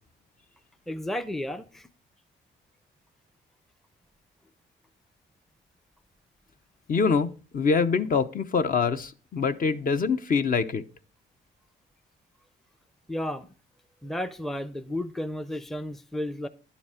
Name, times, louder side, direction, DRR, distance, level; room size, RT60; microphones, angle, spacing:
voice 1, 0.9-1.9 13.1-13.5 14.0-16.5, left 1 dB, ahead, 0.6 m, -33 dB
voice 2, 6.9-10.8, left 5 dB, 45° left, 0.8 m, -25 dB
10.5 x 7.0 x 5.0 m
cardioid pair, 90°, 20 cm